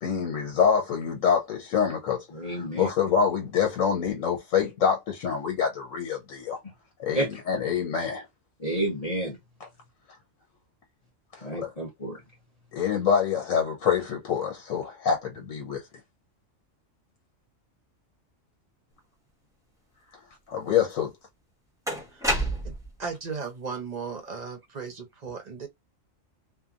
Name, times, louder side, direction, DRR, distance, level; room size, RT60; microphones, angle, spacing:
voice 1, 0.0-6.6 7.0-8.3 11.4-11.7 12.7-15.8 20.5-21.1, left 7 dB, 90° left, 1.1 m, -26 dB
voice 2, 2.3-2.9 7.1-7.6 8.6-9.4 11.4-12.2, right 1 dB, 35° left, 0.9 m, -30 dB
sound 1, 20.9-21.0 21.9-23.0, right 1 dB, 5° right, 0.7 m, -28 dB
voice 3, 22.6-25.7, right 5 dB, 45° right, 0.6 m, -36 dB
2.8 x 2.3 x 2.4 m
omnidirectional pair, 1.3 m